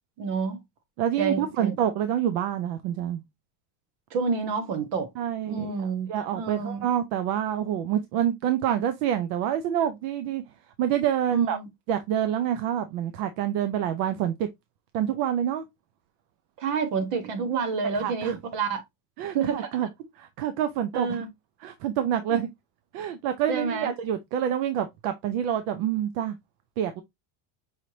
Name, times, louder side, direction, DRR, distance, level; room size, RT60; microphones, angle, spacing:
voice 1, 0.2-0.6 1.2-1.8 4.1-5.1 5.5-6.1 6.3-6.8 11.3-11.7 16.6-18.8 19.3-19.9 20.9-21.3 22.3-22.4 23.5-23.9, right 5 dB, 55° right, 1.3 m, -28 dB
voice 2, 1.0-3.2 5.2-10.4 10.8-11.6 11.9-14.5 14.9-15.6 18.0-18.4 19.2-19.9 20.2-21.2 21.6-22.5 22.9-26.4 26.8-27.0, right 10 dB, 75° right, 0.7 m, -27 dB
5.6 x 3.2 x 2.8 m
cardioid pair, 180°, 45 cm